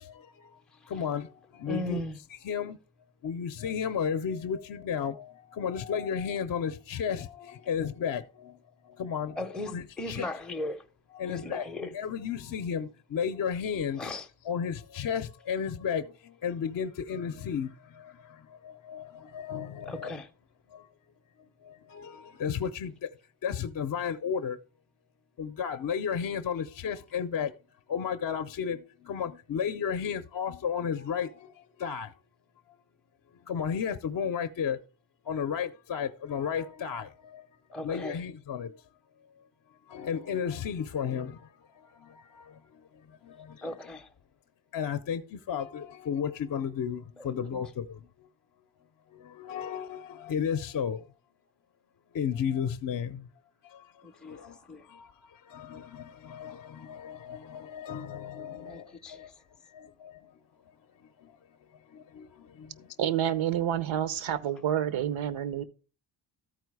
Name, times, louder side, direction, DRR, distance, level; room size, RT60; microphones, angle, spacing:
voice 1, 0.0-0.6 0.8-2.0 2.4-2.8 3.2-8.6 8.8-9.4 9.7-10.3 11.1-14.0 14.5-20.1 20.7-20.9 21.6-23.1 23.4-24.6 25.4-27.5 27.9-32.1 33.5-34.8 35.3-37.5 37.8-38.7 39.9-41.5 41.7-42.6 43.2-43.7 44.7-48.0 49.1-51.0 52.1-53.3 53.6-53.9 54.2-54.6 54.8-59.3 59.6-60.3 61.2-61.3 61.9-62.9, left 7 dB, 45° left, 0.5 m, -33 dB
voice 2, 1.7-2.2 9.4-10.9 11.2-11.9 14.0-14.3 19.9-20.3 37.7-38.2 43.6-44.1 47.2-47.6 54.0-54.9 58.6-59.3, left 1 dB, ahead, 0.5 m, -38 dB
voice 3, 63.0-65.6, right 10 dB, 90° right, 0.9 m, -28 dB
13.5 x 4.6 x 4.7 m
wide cardioid pair, 150°, 46 cm